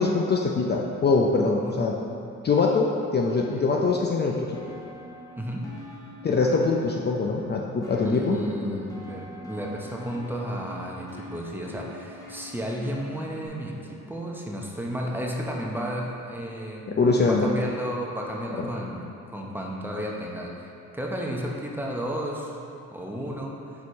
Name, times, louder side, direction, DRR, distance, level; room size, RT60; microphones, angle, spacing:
voice 1, 0.0-2.0 2.4-4.5 6.2-8.4 16.9-17.5, left 4 dB, 35° left, -1 dB, 0.5 m, -23 dB
sound 1, 4.5-13.5, left 1 dB, 10° left, 1.3 m, -45 dB
voice 2, 5.4-5.7 8.0-16.8 17.3-23.6, equal, 5° right, -2 dB, 0.8 m, -33 dB
4.7 x 4.2 x 5.3 m, 2.7 s
cardioid pair, 90°, 30 cm